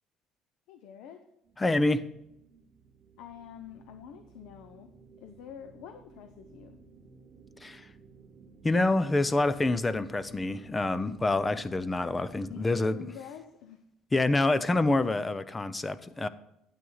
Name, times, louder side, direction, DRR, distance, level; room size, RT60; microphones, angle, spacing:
voice 1, 0.7-1.2 3.2-6.8 12.5-13.8, left 8 dB, 70° left, 8 dB, 0.8 m, -47 dB
sound 1, 1.4-12.6, right 4 dB, 30° right, 1.0 m, -55 dB
voice 2, 1.6-2.1 7.6-7.9 8.6-13.1 14.1-16.3, left 2 dB, 15° left, 15 dB, 0.5 m, -27 dB
12.5 x 9.3 x 4.0 m, 0.82 s
cardioid pair, 150°, 0 cm